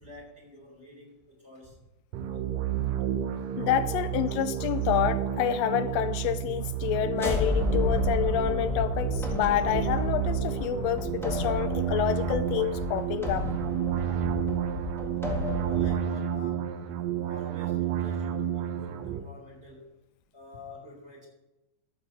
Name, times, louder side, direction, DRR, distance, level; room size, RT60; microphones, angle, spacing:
voice 1, 0.0-1.8 3.1-3.4 15.7-16.8 17.2-19.9 20.3-21.3, left 1 dB, 20° right, -1 dB, 4.0 m, -48 dB
sound 1, 2.1-19.2, right 10 dB, 70° right, 1.8 m, -31 dB
voice 2, 3.6-13.5, left 10 dB, 85° left, 10 dB, 1.5 m, -28 dB
sound 2, 7.1-16.0, left 3 dB, ahead, 0.6 m, -32 dB
13.0 x 4.9 x 8.1 m, 0.96 s
omnidirectional pair, 3.5 m